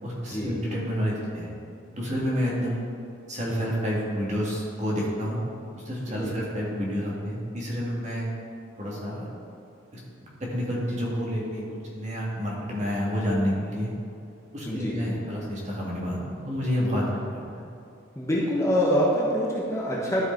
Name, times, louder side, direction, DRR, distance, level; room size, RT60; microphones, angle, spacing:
voice 1, 0.0-1.5 1.9-2.8 3.3-5.4 5.8-8.3 8.8-9.3 10.4-11.6 11.9-13.9 14.5-17.4, equal, 35° right, -4 dB, 1.9 m, -29 dB
voice 2, 14.6-15.0 18.1-20.2, equal, 15° left, -5 dB, 1.1 m, -25 dB
12.5 x 5.0 x 4.5 m, 2.5 s
head